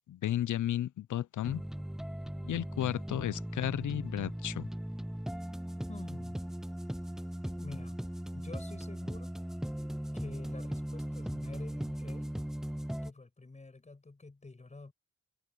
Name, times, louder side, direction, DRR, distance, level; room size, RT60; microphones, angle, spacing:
voice 1, 0.1-1.6 2.4-4.7, left 12 dB, 80° left, 0.6 m, -33 dB
sound 1, 1.4-13.1, equal, ahead, 0.4 m, -38 dB
voice 2, 5.9-6.4 7.4-8.0 8.3-9.4 10.1-12.3 13.0-14.9, left 3 dB, 25° left, 7.8 m, -48 dB
wide cardioid pair, 160°, 30 cm